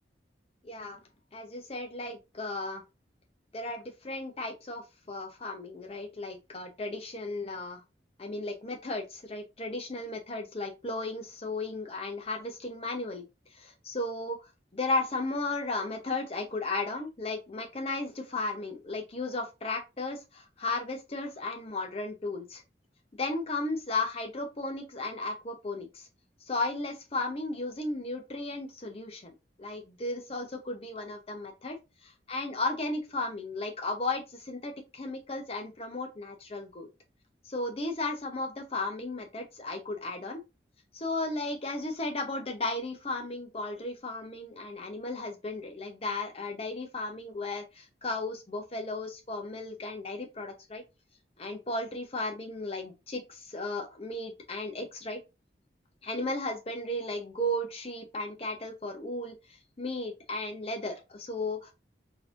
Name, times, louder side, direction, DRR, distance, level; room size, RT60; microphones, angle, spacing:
voice 1, 0.6-1.0 1.3-2.8 3.5-7.8 8.2-13.2 13.5-22.6 23.2-26.1 26.5-31.8 32.0-36.9 37.4-40.4 40.9-50.8 51.4-55.2 56.0-61.7, left 2 dB, 35° left, 0.8 m, -35 dB
3.9 x 2.8 x 2.5 m
head